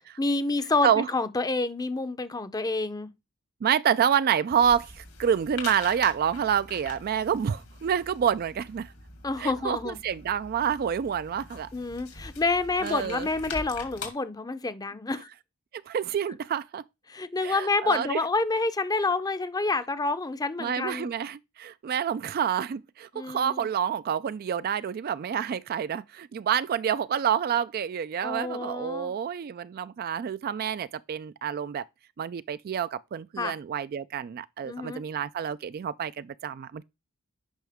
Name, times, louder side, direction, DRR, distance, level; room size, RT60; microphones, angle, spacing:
voice 1, 0.2-3.1 9.2-10.0 11.7-15.3 17.1-21.1 23.1-23.7 28.2-29.1 33.4-33.5 34.6-35.0, left 3 dB, 20° left, 0.6 m, -28 dB
voice 2, 3.6-8.9 9.4-11.7 12.8-13.3 15.9-16.8 17.4-18.2 20.6-31.8 32.2-36.8, right 8 dB, 45° right, 0.3 m, -28 dB
sound 1, 4.5-14.1, left 4 dB, 85° left, 2.6 m, -43 dB
9.1 x 5.5 x 3.5 m
head